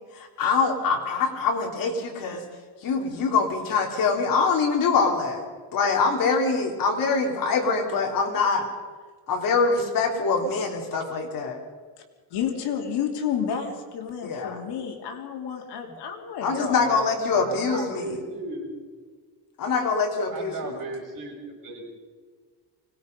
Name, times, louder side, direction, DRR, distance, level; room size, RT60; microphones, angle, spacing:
voice 1, 0.1-2.4 2.8-5.5 5.7-8.7 9.3-11.6 14.2-14.6 16.4-18.2 19.6-20.5, left 4 dB, 50° left, 1 dB, 3.3 m, -24 dB
voice 2, 12.3-17.6, left 7 dB, 70° left, 2 dB, 3.1 m, -31 dB
voice 3, 17.4-18.7 20.3-21.8, right 3 dB, 50° right, -3 dB, 7.7 m, -36 dB
24.5 x 19.5 x 5.3 m, 1.5 s
cardioid pair, 175°, 42 cm